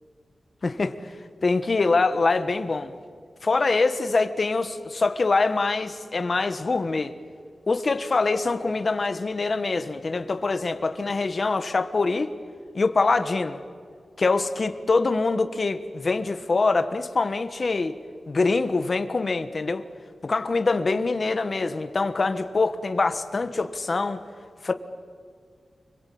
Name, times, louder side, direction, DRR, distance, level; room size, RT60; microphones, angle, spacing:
voice 1, 0.6-1.1 1.4-2.9 3.4-7.1 7.7-12.3 12.7-13.6 14.2-18.0 18.3-19.9 20.2-24.2 24.6-24.7, left 3 dB, 40° left, 9 dB, 1.3 m, -24 dB
29.5 x 22.5 x 8.6 m, 2.1 s
wide cardioid pair, 145°, 0 cm